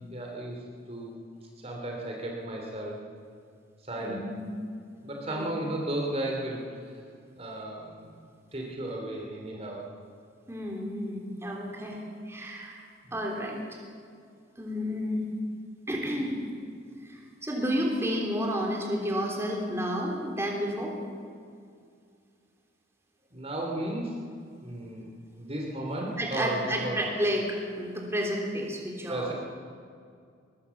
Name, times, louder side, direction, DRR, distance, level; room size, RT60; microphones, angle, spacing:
voice 1, 0.1-0.6 0.9-1.2 1.6-2.9 3.8-4.3 5.0-7.0 7.4-8.2 8.5-9.8 13.0-13.2 23.3-24.2 24.6-27.0 29.1-29.3, right 1 dB, 30° right, -1 dB, 3.0 m, -34 dB
voice 2, 4.0-4.4 5.3-5.4 10.5-12.8 13.1-13.6 14.6-15.3 15.9-16.3 17.0-21.0 26.2-29.3, equal, 15° right, -1 dB, 3.4 m, -31 dB
22.5 x 21.0 x 7.1 m, 2.3 s
head